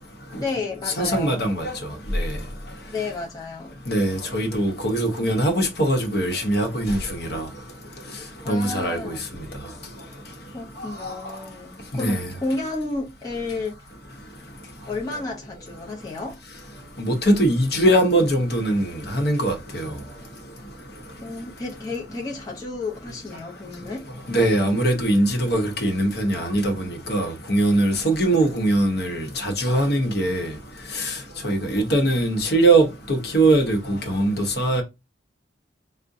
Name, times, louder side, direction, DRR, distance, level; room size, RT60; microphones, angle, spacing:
voice 1, 0.3-1.4 2.9-3.7 8.4-9.5 10.5-13.9 14.9-16.4 21.2-24.1, left 3 dB, 20° left, 0.6 m, -32 dB
voice 2, 1.0-1.7 2.1-2.3 3.9-7.4 8.5-9.1 11.9-12.2 17.0-19.9 24.3-30.5 31.0-31.1 31.4-34.8, right 1 dB, 60° left, 0.8 m, -21 dB
4.6 x 2.1 x 2.6 m
head